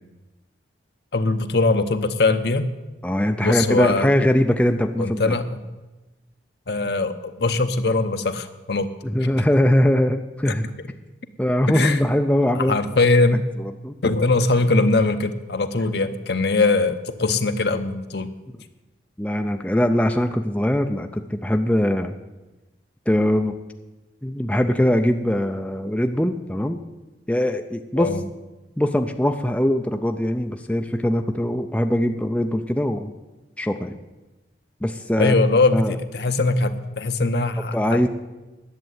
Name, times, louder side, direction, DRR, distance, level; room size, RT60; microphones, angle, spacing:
voice 1, 1.1-2.7 3.4-4.1 5.0-5.6 6.7-8.9 10.4-10.5 11.7-12.0 12.7-13.4 14.0-18.3 28.0-28.2 35.2-38.0, left 3 dB, 60° left, 8 dB, 0.8 m, -21 dB
voice 2, 3.0-5.3 9.0-10.6 11.4-12.8 13.8-13.9 19.2-22.1 23.1-23.5 24.2-26.8 27.3-28.1 28.8-33.1 33.6-34.0 34.8-35.3 35.7-35.9 37.7-38.1, left 1 dB, 5° left, 5 dB, 0.5 m, -21 dB
10.5 x 7.5 x 9.3 m, 1.1 s
head